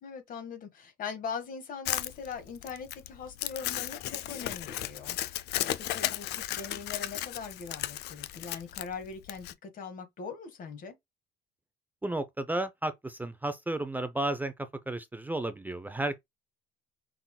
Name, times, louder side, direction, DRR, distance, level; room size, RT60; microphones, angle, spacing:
voice 1, 0.0-10.9, left 6 dB, 55° left, 1.7 m, -41 dB
Crumpling crinkling, 1.8-9.5, left 13 dB, 75° left, 0.5 m, -35 dB
voice 2, 12.0-14.5 14.9-16.2, right 2 dB, 10° right, 0.5 m, -33 dB
5.8 x 3.7 x 2.3 m
cardioid pair, 110°, 17 cm